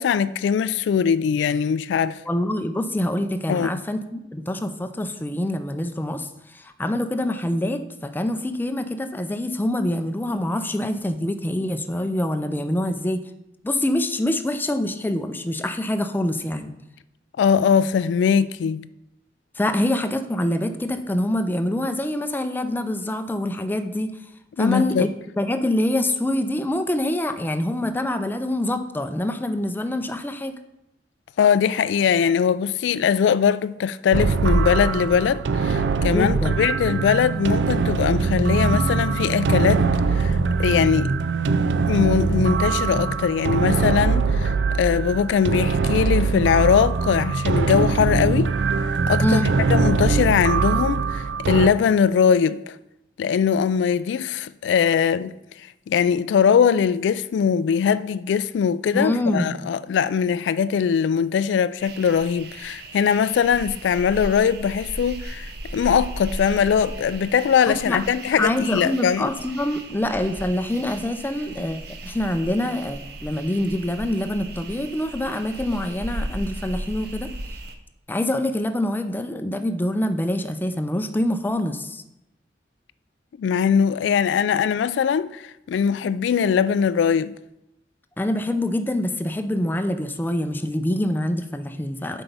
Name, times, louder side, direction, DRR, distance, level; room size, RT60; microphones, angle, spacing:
voice 1, 0.0-2.2 3.5-3.7 17.4-18.9 24.6-25.1 31.4-39.8 40.1-41.1 41.8-44.5 44.8-48.5 49.1-49.4 49.7-52.7 53.2-55.3 55.9-69.3 83.4-85.4 85.7-87.3, left 7 dB, 85° left, 0.3 m, -21 dB
voice 2, 2.3-6.3 6.5-13.2 13.6-16.7 19.6-24.1 24.6-25.1 25.4-30.5 36.1-36.7 49.2-49.5 58.9-59.5 67.7-68.0 68.3-77.3 78.1-82.0 88.2-92.2, left 1 dB, 10° left, 0.4 m, -25 dB
sound 1, 34.1-51.7, right 4 dB, 80° right, 0.4 m, -22 dB
sound 2, 61.8-77.7, right 1 dB, 65° right, 0.8 m, -36 dB
7.7 x 4.6 x 5.4 m
head